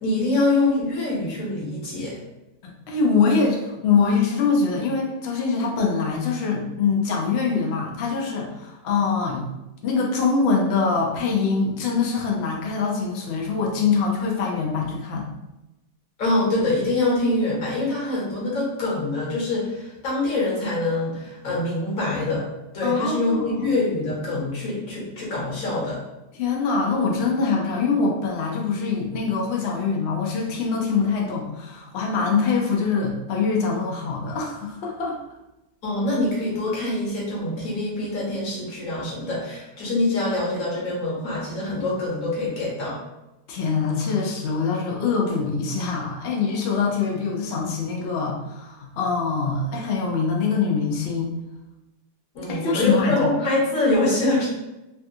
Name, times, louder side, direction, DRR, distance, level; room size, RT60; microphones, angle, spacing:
voice 1, 0.0-2.1 16.2-22.5 22.7-26.0 35.8-43.0 52.3-54.5, left 2 dB, 55° left, -5 dB, 1.4 m, -24 dB
voice 2, 2.6-9.5 9.8-15.3 22.8-23.7 26.3-35.2 43.5-51.3 52.5-53.3, left 5 dB, 85° left, -1 dB, 0.5 m, -24 dB
3.4 x 2.4 x 2.7 m, 0.98 s
omnidirectional pair, 1.8 m